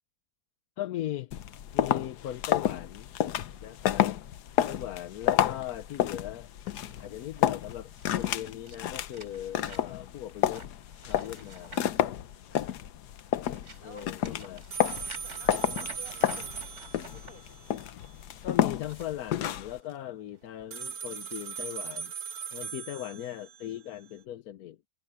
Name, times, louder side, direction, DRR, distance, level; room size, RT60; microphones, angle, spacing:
voice 1, 0.8-1.3 1.7-3.1 3.6-4.2 4.6-6.5 7.0-10.7 11.1-11.8 13.8-14.6 18.4-22.1 22.5-24.8, left 12 dB, 70° left, 1.2 m, -38 dB
sound 1, 1.3-19.8, left 11 dB, 85° left, 1.4 m, -30 dB
voice 2, 3.5-4.1 12.1-12.9 13.8-14.1 14.8-17.9, left 1 dB, 30° left, 6.3 m, -54 dB
sound 2, 6.6-12.8 13.2-17.3 18.6-20.0 20.4-20.7 21.3-21.4, right 2 dB, 45° right, 4.6 m, -50 dB
sound 3, 14.7-18.1 20.7-24.1, right 7 dB, 65° right, 1.5 m, -39 dB
omnidirectional pair, 1.7 m